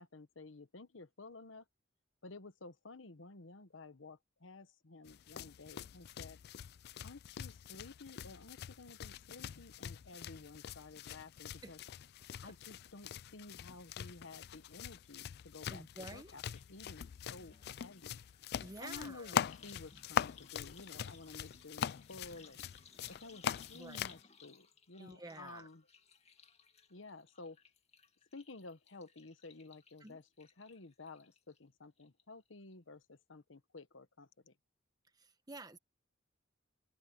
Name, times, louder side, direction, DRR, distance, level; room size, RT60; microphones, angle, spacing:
voice 1, 0.0-1.6 2.2-6.4 7.0-11.8 12.4-16.4 16.7-18.2 18.8-22.6 23.1-25.9 26.9-27.6 28.3-34.5, left 3 dB, 80° left, 1.2 m, -53 dB
sound 1, 5.1-24.2, left 9 dB, 55° left, 0.3 m, -43 dB
voice 2, 15.7-16.4 18.6-19.4 23.7-24.1 25.0-25.7 30.0-30.2 35.2-35.8, right 2 dB, 20° right, 1.3 m, -50 dB
sound 2, 16.6-16.7 17.0-31.6 32.0-32.5 32.7-32.8, left 6 dB, 35° left, 2.3 m, -62 dB
open air
head